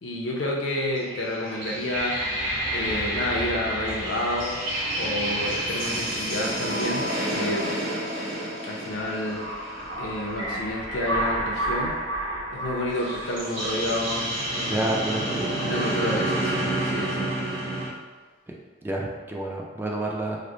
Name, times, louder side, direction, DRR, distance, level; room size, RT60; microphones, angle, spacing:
voice 1, 0.0-2.2 2.7-4.7 5.0-7.8 8.6-9.6 10.0-12.0 12.5-15.0 15.7-17.3, left 1 dB, 75° left, -1 dB, 0.6 m, -30 dB
sound 1, 1.0-17.9, right 1 dB, 90° right, 1.0 m, -29 dB
voice 2, 14.7-15.5 18.8-20.4, right 1 dB, 10° right, -1 dB, 0.3 m, -29 dB
3.2 x 2.0 x 3.7 m, 1.3 s
head